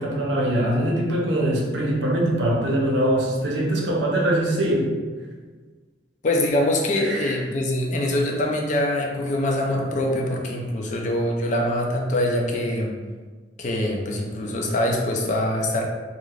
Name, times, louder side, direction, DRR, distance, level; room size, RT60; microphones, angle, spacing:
voice 1, 0.0-4.9 7.0-7.4, right 1 dB, 85° right, -2 dB, 0.6 m, -22 dB
voice 2, 6.2-12.9 13.6-15.8, left 1 dB, 45° left, 0 dB, 0.4 m, -24 dB
3.1 x 2.4 x 2.4 m, 1.4 s
head